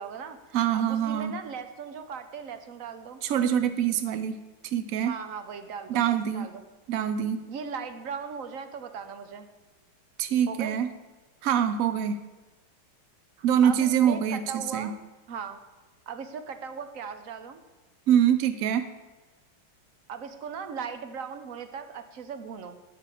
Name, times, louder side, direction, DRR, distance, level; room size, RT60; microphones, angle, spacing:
voice 1, 0.0-3.2 5.1-6.0 6.3-6.6 7.5-9.5 10.5-10.8 13.4-15.0 15.3-15.6 16.1-17.6 20.1-22.8, right 6 dB, 55° right, 8 dB, 1.0 m, -38 dB
voice 2, 0.5-1.3 3.2-4.4 4.6-5.2 5.9-6.5 6.9-7.4 10.2-10.9 11.4-12.2 13.4-14.9 18.1-18.9, right 9 dB, 85° right, 10 dB, 0.7 m, -24 dB
12.5 x 5.3 x 8.3 m, 1.2 s
omnidirectional pair, 2.2 m